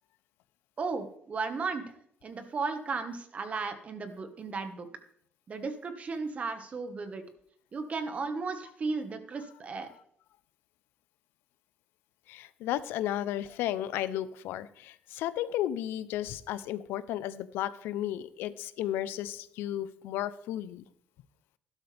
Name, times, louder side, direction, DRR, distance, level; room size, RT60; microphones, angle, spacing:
voice 1, 0.8-1.8 2.2-4.9 5.5-7.2 7.7-9.9, right 4 dB, 40° right, 8 dB, 1.6 m, -35 dB
voice 2, 12.3-20.8, left 12 dB, 85° left, 15 dB, 0.6 m, -34 dB
12.5 x 12.0 x 3.5 m, 0.66 s
cardioid pair, 100°, 4 cm